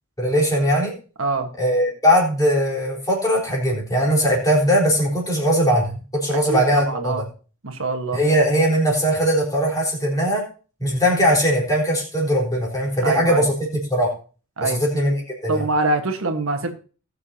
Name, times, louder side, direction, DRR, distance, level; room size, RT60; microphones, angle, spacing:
voice 1, 0.2-0.9 1.6-7.3 8.1-10.4 10.8-14.1 14.6-15.6, equal, 15° left, -3 dB, 4.0 m, -20 dB
voice 2, 1.2-1.5 6.3-7.2 7.6-8.2 13.0-13.4 14.6-14.8 15.5-16.7, right 3 dB, 75° right, 5 dB, 1.4 m, -24 dB
20.0 x 6.8 x 2.8 m, 0.37 s
head